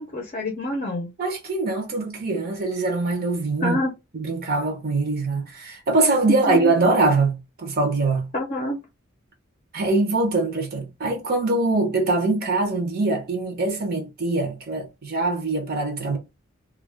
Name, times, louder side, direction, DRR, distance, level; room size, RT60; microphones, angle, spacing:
voice 1, 0.0-1.1 3.6-3.9 6.3-6.9 8.3-8.8, left 1 dB, 35° left, 0.6 m, -27 dB
voice 2, 1.2-3.8 4.1-8.3 9.7-16.2, right 3 dB, 45° right, 0.7 m, -23 dB
2.3 x 2.3 x 3.3 m
head